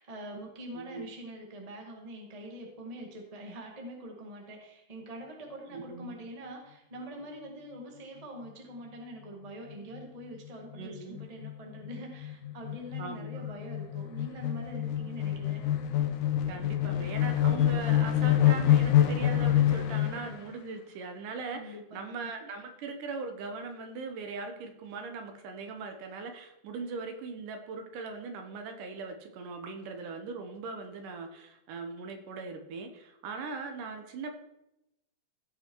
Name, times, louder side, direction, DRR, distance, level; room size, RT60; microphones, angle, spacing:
voice 1, 0.0-15.6 21.5-22.3, right 1 dB, 20° right, 0 dB, 1.0 m, -44 dB
voice 2, 0.7-1.1 5.7-6.2 10.7-11.2 13.0-13.5 16.5-34.3, right 4 dB, 75° right, 5 dB, 2.6 m, -40 dB
sound 1, 9.7-10.0 10.4-10.5 10.7-20.4, left 11 dB, 70° left, 2.2 m, -27 dB
15.5 x 5.6 x 4.6 m, 0.88 s
omnidirectional pair, 3.8 m